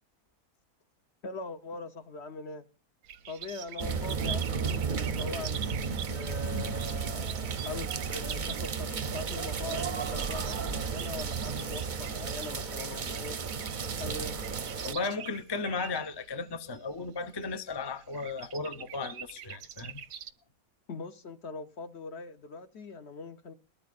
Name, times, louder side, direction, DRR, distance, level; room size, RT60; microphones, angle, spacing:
voice 1, 1.2-2.7 3.3-13.4 14.0-14.4 20.9-23.5, left 3 dB, 50° left, 1.1 m, -42 dB
sound 1, 3.0-20.3, right 9 dB, 90° right, 1.4 m, -45 dB
sound 2, 3.8-14.9, right 5 dB, 40° right, 0.7 m, -33 dB
voice 2, 14.8-20.0, left 4 dB, 25° left, 0.5 m, -35 dB
21.5 x 13.5 x 2.5 m
omnidirectional pair, 1.6 m